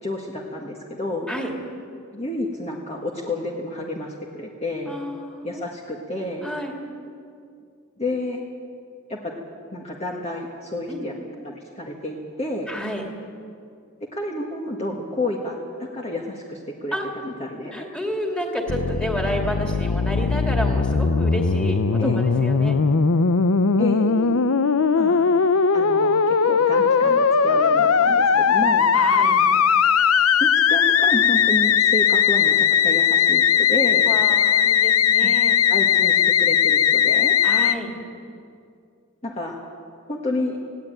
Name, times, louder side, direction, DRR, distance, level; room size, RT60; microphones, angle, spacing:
voice 1, 0.0-1.3 2.1-4.9 5.4-6.5 8.0-8.4 9.1-9.3 9.7-11.1 11.4-12.7 14.1-16.9 17.2-17.9 22.0-22.2 23.8-24.1 24.9-25.3 25.7-28.9 30.4-34.1 35.2-35.3 35.7-37.3 39.2-39.6 40.1-40.6, left 1 dB, 30° left, -1 dB, 1.7 m, -30 dB
voice 2, 4.9-5.6 6.4-6.8 10.9-11.1 12.7-13.0 16.9-17.1 17.7-22.8 24.0-24.5 28.9-29.4 34.0-35.6 37.4-37.9, equal, 5° left, 1 dB, 2.6 m, -30 dB
Musical instrument, 18.7-37.7, left 6 dB, 85° left, 0.7 m, -19 dB
19.5 x 16.5 x 9.1 m, 2.4 s
head